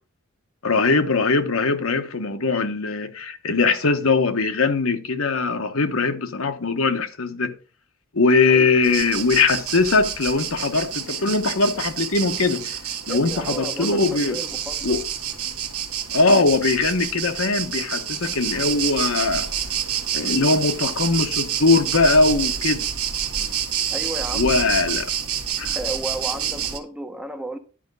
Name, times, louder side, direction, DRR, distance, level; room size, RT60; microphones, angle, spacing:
voice 1, 0.6-7.5 8.1-12.8 13.1-14.4 14.8-15.0 16.1-19.5 20.1-22.9 24.3-25.1 25.6-25.8, left 3 dB, 70° left, 1.1 m, -21 dB
sound 1, 8.8-26.8, right 9 dB, 75° right, 1.2 m, -28 dB
voice 2, 13.1-15.0 23.9-24.7 25.7-27.6, right 1 dB, 5° right, 0.7 m, -33 dB
10.5 x 5.1 x 5.2 m
head